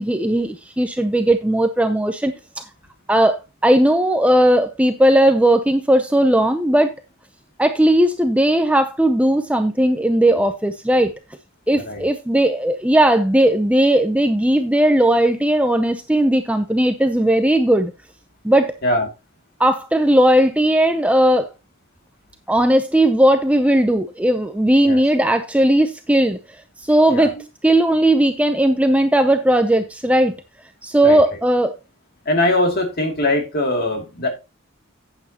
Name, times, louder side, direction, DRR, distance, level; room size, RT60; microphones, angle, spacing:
voice 1, 0.0-2.7 3.1-6.9 7.6-11.1 11.7-17.9 18.4-18.8 19.6-21.5 22.5-26.4 26.8-27.4 27.6-30.3 30.8-31.7, right 1 dB, 5° right, 0.6 m, -17 dB
voice 2, 32.2-34.3, left 1 dB, 45° left, 2.6 m, -21 dB
11.5 x 8.6 x 2.9 m
head